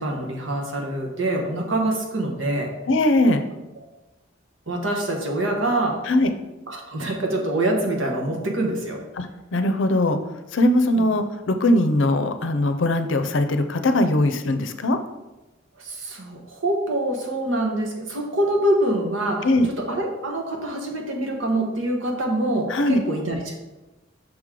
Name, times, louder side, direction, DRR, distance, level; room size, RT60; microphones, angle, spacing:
voice 1, 0.0-2.7 3.8-3.9 4.7-6.0 6.7-9.0 11.0-11.1 15.8-23.6, right 1 dB, 80° right, 2 dB, 1.2 m, -25 dB
voice 2, 2.9-3.4 6.1-6.3 9.2-10.2 10.5-15.0 19.4-19.7 22.7-23.0, left 1 dB, 70° left, 8 dB, 0.5 m, -20 dB
6.1 x 3.7 x 4.8 m, 1.0 s
head